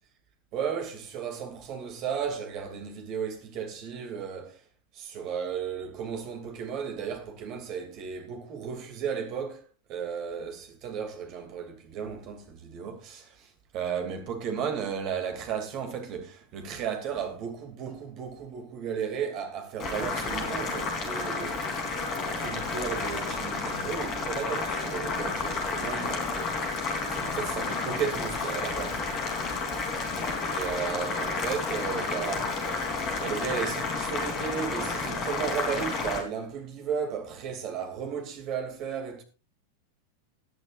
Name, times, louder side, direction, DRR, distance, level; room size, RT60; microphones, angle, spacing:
voice 1, 0.5-4.6 4.9-21.6 22.1-26.4 27.2-29.0 30.5-32.6 33.2-39.2, right 7 dB, 40° right, 2.7 m, -34 dB
Boiling, 19.8-36.2, left 4 dB, 30° left, 3.5 m, -31 dB
18.5 x 10.5 x 2.6 m
figure-of-eight pair, 90°, 0 cm